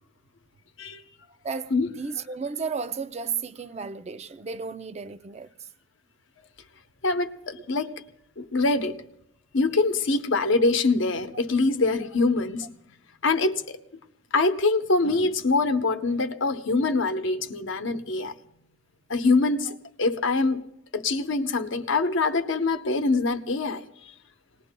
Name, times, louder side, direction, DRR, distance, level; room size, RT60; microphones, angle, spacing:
voice 1, 1.4-5.5, right 5 dB, 35° right, 0.5 m, -33 dB
voice 2, 7.0-8.0 8.4-9.0 9.5-12.7 13.2-13.8 14.3-18.3 19.1-19.7 20.0-20.6 20.9-23.9, left 3 dB, 75° left, 0.9 m, -24 dB
27.5 x 19.0 x 2.2 m
head